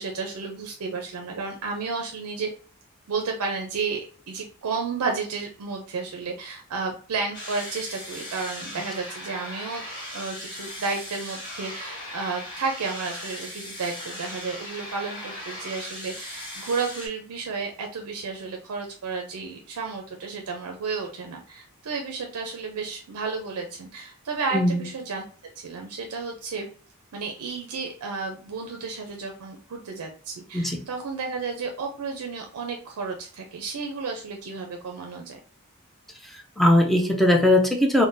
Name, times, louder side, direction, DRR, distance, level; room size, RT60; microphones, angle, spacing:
voice 1, 0.0-2.5 3.1-4.0 4.3-9.8 10.1-25.2 25.6-26.7 27.1-35.4, right 4 dB, 70° right, 2 dB, 0.5 m, -32 dB
sound 1, 7.3-17.1, left 1 dB, 20° left, 1.5 m, -38 dB
voice 2, 24.5-24.9 30.5-30.8 36.6-38.1, left 1 dB, ahead, 1 dB, 0.5 m, -19 dB
3.7 x 2.1 x 2.5 m, 0.43 s
head